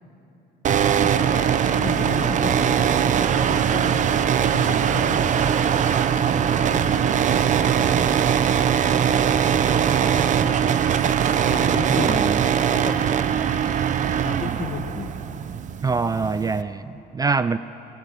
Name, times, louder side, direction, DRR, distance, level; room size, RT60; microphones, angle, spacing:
sound 1, 0.6-16.6, right 8 dB, 45° right, 0.8 m, -21 dB
voice 1, 0.8-4.2 4.5-5.8 6.2-7.2 7.6-10.9 11.4-12.3 12.7-13.7 14.2-15.1, left 6 dB, 45° left, 8 dB, 1.4 m, -36 dB
voice 2, 11.9-12.4 15.8-17.6, right 4 dB, 20° right, 14 dB, 0.4 m, -25 dB
27.0 x 19.0 x 6.0 m, 2.9 s
cardioid pair, 110°, 17 cm